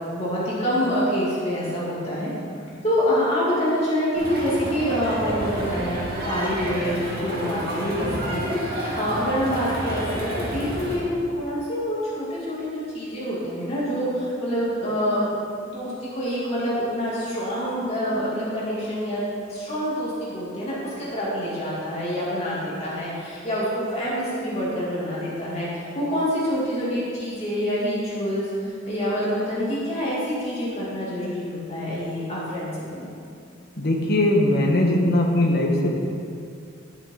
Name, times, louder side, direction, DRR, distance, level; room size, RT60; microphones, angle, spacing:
voice 1, 0.1-2.3 2.8-15.3 15.6-33.1, equal, 30° left, -8 dB, 2.9 m, -26 dB
Crowd, 4.2-10.9, right 1 dB, 50° right, 2.6 m, -29 dB
voice 2, 33.8-36.0, left 1 dB, 50° left, -1 dB, 1.5 m, -20 dB
11.5 x 10.0 x 4.0 m, 2.4 s
head